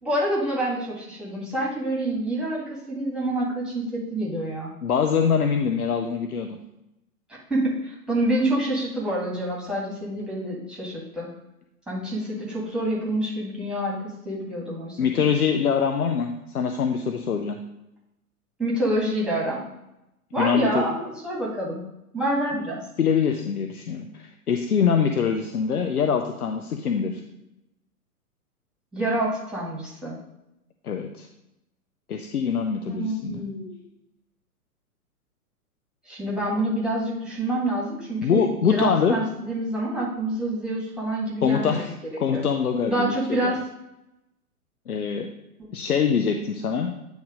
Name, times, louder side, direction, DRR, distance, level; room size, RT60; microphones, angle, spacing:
voice 1, 0.0-4.7 7.5-11.3 11.9-15.0 18.6-19.6 20.3-21.8 22.1-22.8 28.9-30.2 32.9-33.8 36.1-41.8 42.3-42.4 42.9-43.6, right 1 dB, ahead, -6 dB, 1.8 m, -27 dB
voice 2, 4.8-6.6 15.0-17.6 20.4-20.8 23.0-27.2 30.8-31.3 32.1-33.3 38.2-39.2 41.4-41.9 42.2-43.5 44.9-45.3 45.7-46.9, left 6 dB, 75° left, 5 dB, 0.8 m, -24 dB
9.2 x 3.2 x 5.0 m, 0.89 s
figure-of-eight pair, 115°, 44 cm